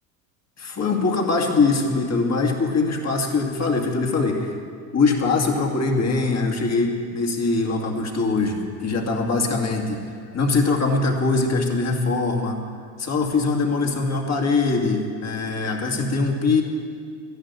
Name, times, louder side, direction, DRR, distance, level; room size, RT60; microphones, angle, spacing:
voice 1, 0.6-4.5 4.9-10.0 10.3-12.6 13.0-16.6, left 3 dB, 35° left, 1 dB, 2.5 m, -22 dB
12.5 x 11.5 x 9.8 m, 2.2 s
supercardioid pair, 90°, 48 cm